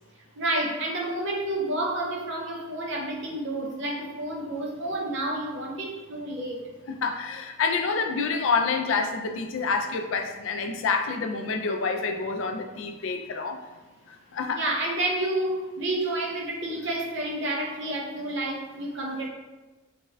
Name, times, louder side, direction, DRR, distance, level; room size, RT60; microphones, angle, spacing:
voice 1, 0.4-6.7 14.5-19.3, right 1 dB, 60° right, 0 dB, 0.6 m, -30 dB
voice 2, 6.9-13.6 14.3-14.6, left 4 dB, 70° left, 5 dB, 0.3 m, -27 dB
3.4 x 2.2 x 3.2 m, 1.1 s
head